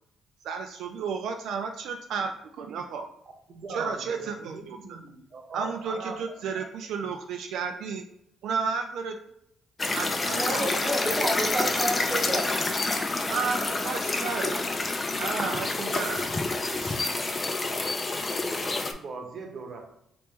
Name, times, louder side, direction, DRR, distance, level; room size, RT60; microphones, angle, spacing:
voice 1, 0.4-3.1 3.7-5.0 5.5-8.0 8.4-9.1 9.9-11.3 13.3-14.7 15.1-16.3 16.7-17.0, right 5 dB, 80° right, 4 dB, 0.3 m, -33 dB
voice 2, 3.5-6.2 10.3-10.9 12.9-13.0 18.6-19.8, right 4 dB, 55° right, 2 dB, 0.9 m, -40 dB
sound 1, 9.8-18.9, left 2 dB, 30° left, 0.4 m, -28 dB
voice 3, 10.2-12.5, right 1 dB, 10° right, 0 dB, 0.8 m, -30 dB
2.9 x 2.9 x 3.5 m, 0.76 s
cardioid pair, 90°, 0 cm